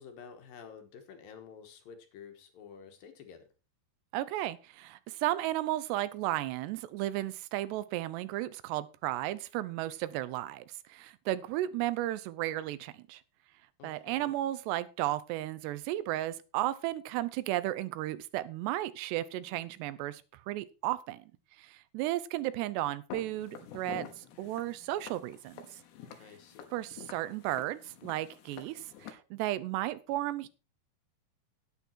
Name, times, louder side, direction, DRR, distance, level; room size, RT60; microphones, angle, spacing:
voice 1, 0.0-3.5 13.8-14.3 26.2-26.7, left 6 dB, 70° left, 7 dB, 2.8 m, -50 dB
voice 2, 4.1-13.2 13.8-21.3 21.6-25.6 26.7-30.5, right 15 dB, 85° right, 16 dB, 2.8 m, -34 dB
Walk footsteps, 23.1-29.1, left 8 dB, 90° left, 3.5 m, -48 dB
10.5 x 9.2 x 4.5 m, 0.32 s
omnidirectional pair, 4.8 m